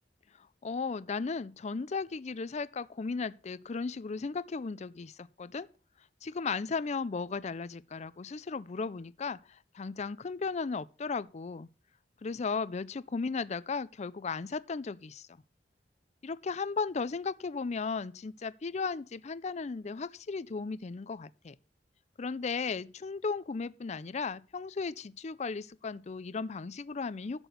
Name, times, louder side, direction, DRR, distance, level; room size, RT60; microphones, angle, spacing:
voice 1, 0.3-5.7 6.2-11.7 12.2-15.3 16.2-21.5 22.2-27.5, left 4 dB, 40° left, 0.4 m, -36 dB
11.0 x 4.4 x 7.9 m
head